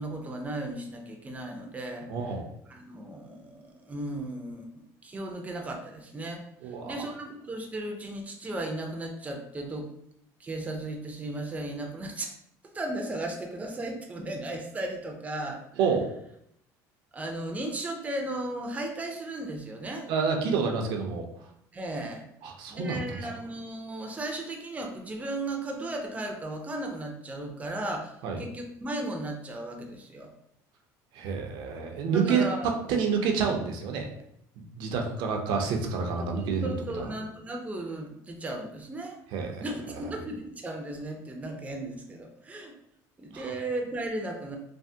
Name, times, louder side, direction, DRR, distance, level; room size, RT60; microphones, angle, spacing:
voice 1, 0.0-2.1 2.7-9.9 10.4-12.3 12.7-15.6 17.1-20.1 21.7-22.2 22.7-30.3 32.1-32.7 36.2-39.2 39.6-42.7 43.2-44.6, right 1 dB, 15° right, 2 dB, 0.5 m, -35 dB
voice 2, 2.1-2.4 6.6-7.0 15.8-16.1 20.1-21.2 22.4-23.0 28.2-28.4 31.1-32.5 32.9-34.1 34.6-36.7 37.0-37.1 39.3-39.6 43.3-43.5, right 5 dB, 70° right, 2 dB, 0.6 m, -28 dB
3.4 x 2.1 x 2.6 m, 0.74 s
cardioid pair, 120°, 8 cm